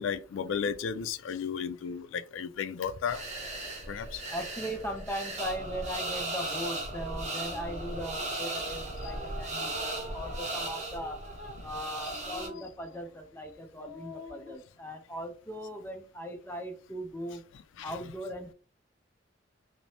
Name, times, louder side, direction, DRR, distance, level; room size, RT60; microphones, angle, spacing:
voice 1, 0.0-3.2 3.9-4.2 17.8-18.0, left 7 dB, 80° left, 0.3 m, -34 dB
sound 1, 3.1-12.5, right 2 dB, 35° right, 0.7 m, -37 dB
voice 2, 4.3-11.2 11.6-17.4 17.8-18.5, equal, 10° left, 0.4 m, -39 dB
sound 2, 7.4-8.5 9.0-13.3 13.7-14.5, left 1 dB, 45° left, 1.3 m, -47 dB
3.2 x 2.0 x 2.6 m
head